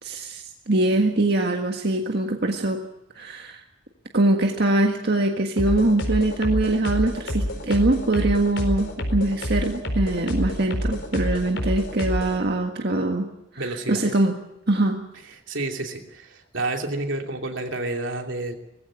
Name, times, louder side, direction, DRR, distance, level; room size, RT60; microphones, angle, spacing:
voice 1, 0.0-2.8 3.2-3.6 4.1-13.3 13.5-14.3 14.7-15.0, right 2 dB, 60° right, 3 dB, 1.6 m, -23 dB
sound 1, 5.6-12.4, equal, 70° left, 4.4 m, -28 dB
voice 2, 13.6-14.0 15.2-18.5, right 2 dB, 85° right, 3 dB, 2.9 m, -30 dB
20.0 x 15.5 x 9.8 m, 0.89 s
head